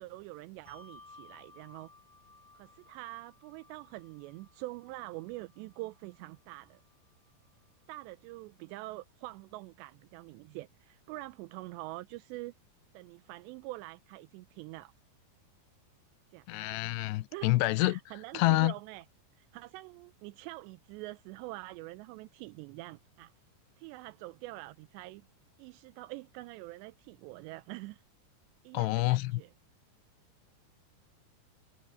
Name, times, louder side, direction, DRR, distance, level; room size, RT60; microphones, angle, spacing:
voice 1, 0.0-1.9 2.5-6.8 7.9-12.5 12.9-14.9 16.3-16.8 17.3-19.0 19.4-23.3 23.8-25.3 25.6-28.0 28.6-29.5, right 20 dB, 85° right, 2.8 m, -45 dB
Bell, 0.6-7.5, left 3 dB, 10° left, 3.6 m, -59 dB
voice 2, 16.5-18.0 18.3-18.7 28.7-29.4, left 19 dB, 80° left, 2.7 m, -27 dB
omnidirectional pair, 5.0 m